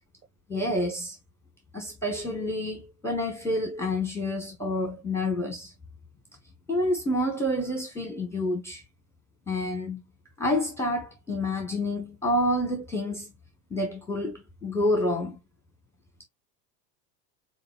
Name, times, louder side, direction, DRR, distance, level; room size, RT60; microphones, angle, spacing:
voice 1, 0.5-1.2 1.7-5.7 6.7-8.8 9.5-10.0 10.4-13.3 13.7-15.4, left 1 dB, 5° left, 1.0 m, -28 dB
4.2 x 3.8 x 2.2 m
hypercardioid pair, 110°, 46 cm